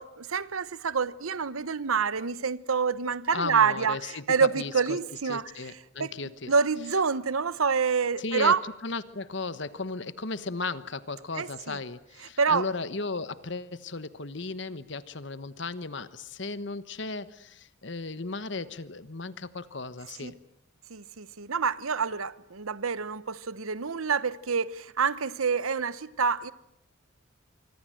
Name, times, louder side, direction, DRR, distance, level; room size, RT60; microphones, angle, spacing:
voice 1, 0.0-5.4 6.0-6.1 6.5-8.6 11.4-11.8 12.4-12.7 20.2-20.3 20.9-26.5, right 5 dB, 90° right, 0.9 m, -27 dB
voice 2, 3.3-5.0 5.3-6.5 8.2-20.4, left 3 dB, 60° left, 1.2 m, -35 dB
25.0 x 25.0 x 7.7 m
head